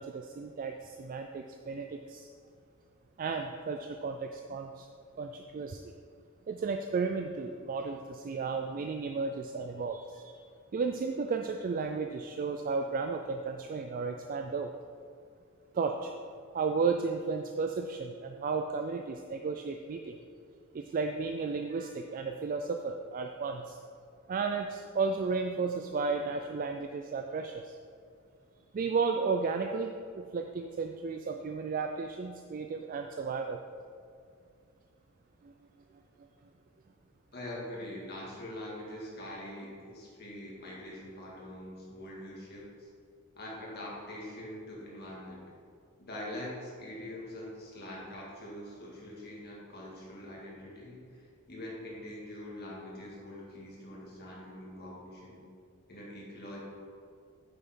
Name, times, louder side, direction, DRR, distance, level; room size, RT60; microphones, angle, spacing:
voice 1, 0.0-2.3 3.2-4.9 5.2-5.9 6.5-10.4 10.7-14.7 15.7-16.1 16.5-20.2 20.7-23.8 24.3-27.8 28.7-33.6 35.4-35.5, right 4 dB, 40° right, 5 dB, 0.3 m, -33 dB
voice 2, 37.3-42.9 43.4-45.5 46.0-55.4 55.9-56.6, left 1 dB, 50° left, -4 dB, 2.0 m, -44 dB
8.6 x 6.9 x 3.7 m, 2.3 s
head